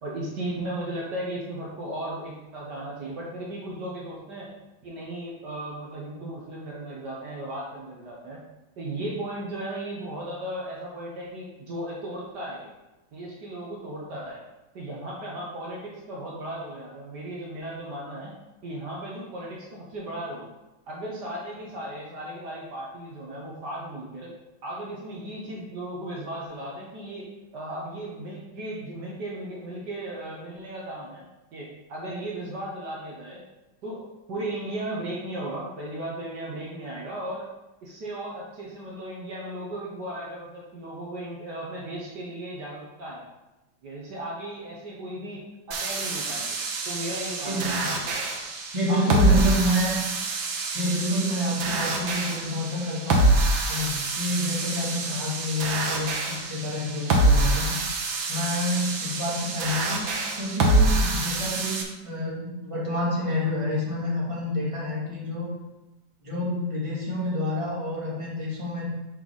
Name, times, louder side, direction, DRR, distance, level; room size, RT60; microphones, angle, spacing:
voice 1, 0.0-4.5 4.8-8.4 8.8-12.7 13.1-14.4 14.7-18.3 18.6-20.5 20.9-24.3 24.6-27.3 27.5-31.2 31.5-33.4 33.8-34.0 34.3-37.5 37.8-43.2 43.8-45.4 45.7-46.6 46.8-48.2 48.9-49.5, right 1 dB, 65° right, -4 dB, 1.7 m, -36 dB
sound 1, 45.7-61.8, right 2 dB, 85° right, 1.7 m, -26 dB
voice 2, 47.4-47.9 48.7-50.0 50.7-53.2 53.7-57.7 58.3-60.0 60.4-65.5 66.2-68.8, left 1 dB, 15° right, -6 dB, 2.0 m, -28 dB
5.6 x 5.0 x 5.5 m, 1.0 s
omnidirectional pair, 2.1 m